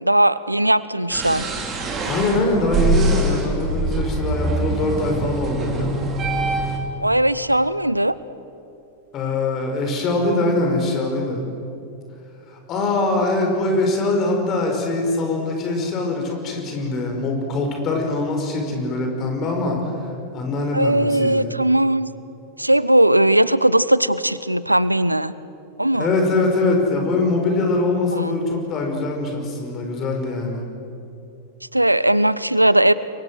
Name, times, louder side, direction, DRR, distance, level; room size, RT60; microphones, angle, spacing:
voice 1, 0.0-1.5 7.0-8.1 20.7-22.1 22.6-25.3 25.8-26.1 28.1-28.4 31.7-32.9, right 1 dB, 85° right, 18 dB, 0.6 m, -18 dB
sound 1, 1.1-6.8, right 3 dB, 25° right, 3.8 m, -24 dB
voice 2, 1.9-5.9 9.1-11.4 12.5-19.9 20.3-21.5 25.9-30.6, left 2 dB, 35° left, 2 dB, 5.7 m, -23 dB
30.0 x 23.5 x 6.5 m, 2.7 s
figure-of-eight pair, 90°, 0 cm